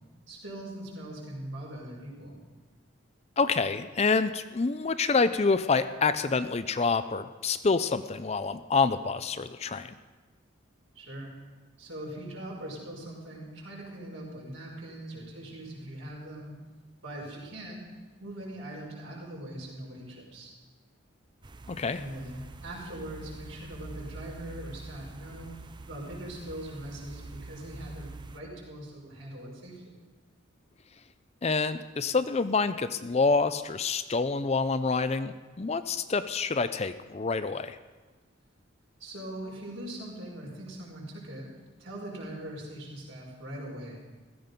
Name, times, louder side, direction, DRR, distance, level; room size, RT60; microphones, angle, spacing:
voice 1, 0.3-2.4 10.9-11.3 11.8-16.6 17.0-17.8 18.2-20.5 21.9-25.5 25.8-30.0 39.0-41.5 41.8-44.0, right 1 dB, 75° right, -2 dB, 5.0 m, -41 dB
voice 2, 3.4-9.9 21.7-22.0 31.4-37.8, left 4 dB, 30° left, 12 dB, 0.5 m, -27 dB
sound 1, 21.4-28.4, right 2 dB, 20° right, 0.5 m, -46 dB
15.5 x 14.5 x 5.3 m, 1.3 s
head